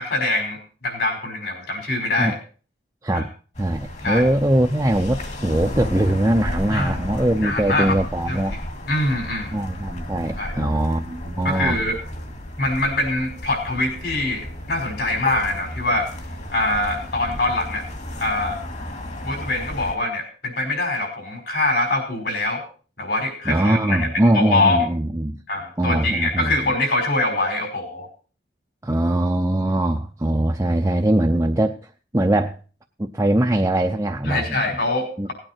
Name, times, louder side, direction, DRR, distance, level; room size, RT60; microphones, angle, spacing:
voice 1, 0.0-2.4 3.1-3.2 4.0-4.3 6.7-7.0 7.4-8.0 8.3-8.6 8.9-9.6 10.4-10.6 11.4-12.0 12.6-16.1 16.5-17.9 18.2-18.6 19.2-22.6 23.0-24.1 24.3-24.8 25.5-28.1 34.2-35.3, left 2 dB, 55° left, 4 dB, 5.1 m, -24 dB
sound 1, 3.5-20.0, left 1 dB, 40° left, 2.2 m, -33 dB
voice 2, 3.6-8.5 9.5-11.8 23.5-25.4 25.8-26.7 28.8-31.8 32.1-32.6 33.0-34.5 35.2-35.3, right 1 dB, 15° right, 3 dB, 0.6 m, -21 dB
18.0 x 9.0 x 4.4 m, 0.38 s
head